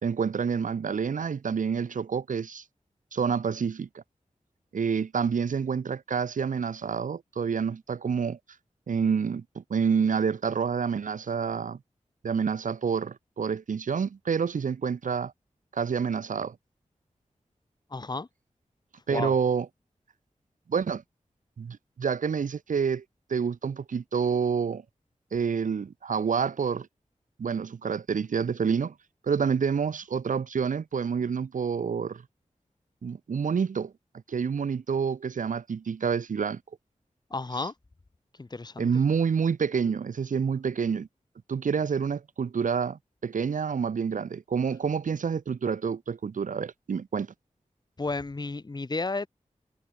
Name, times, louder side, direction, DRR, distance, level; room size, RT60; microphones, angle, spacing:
voice 1, 0.0-2.6 3.1-4.0 4.7-8.4 8.9-11.8 12.2-15.3 15.7-16.5 19.1-19.7 20.7-21.0 21.6-23.0 23.3-24.8 25.3-26.9 27.4-28.9 29.3-32.2 33.0-33.9 34.3-36.6 38.8-41.1 41.5-47.3, right 6 dB, 90° right, 0.9 m, -28 dB
voice 2, 17.9-18.3 19.1-19.3 37.3-37.7 38.4-38.9 48.0-49.3, left 3 dB, 30° left, 1.3 m, -32 dB
wide cardioid pair, 90°, 13 cm